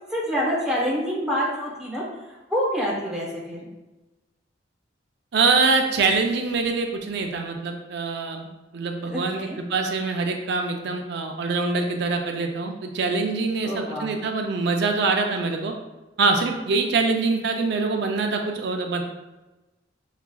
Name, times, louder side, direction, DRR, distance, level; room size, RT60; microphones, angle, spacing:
voice 1, 0.1-3.7 9.0-9.6 13.6-14.2 16.7-16.8, equal, 5° right, -6 dB, 0.9 m, -27 dB
voice 2, 5.3-8.5 8.7-15.7 16.2-19.0, right 4 dB, 60° right, 3 dB, 0.4 m, -24 dB
5.7 x 2.4 x 2.2 m, 1.1 s
head